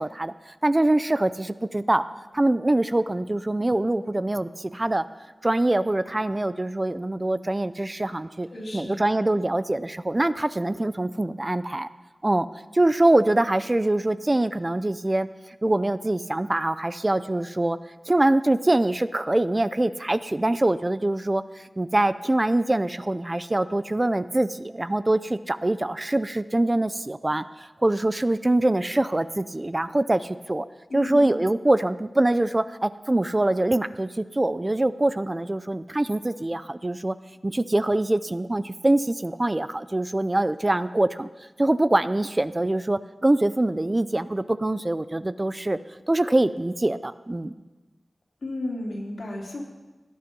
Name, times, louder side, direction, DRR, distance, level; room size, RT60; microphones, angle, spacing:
voice 1, 0.0-2.0 2.3-5.0 5.4-8.5 8.7-11.9 12.2-12.5 12.7-15.3 15.6-17.8 18.1-30.7 30.9-37.2 37.4-41.3 41.6-45.8 46.1-47.5, right 1 dB, 25° right, 13 dB, 0.5 m, -24 dB
voice 2, 8.5-9.0 30.9-31.4 48.4-49.6, left 1 dB, 80° left, -2 dB, 3.4 m, -33 dB
18.0 x 10.5 x 5.4 m, 1.2 s
wide cardioid pair, 85°, 0 cm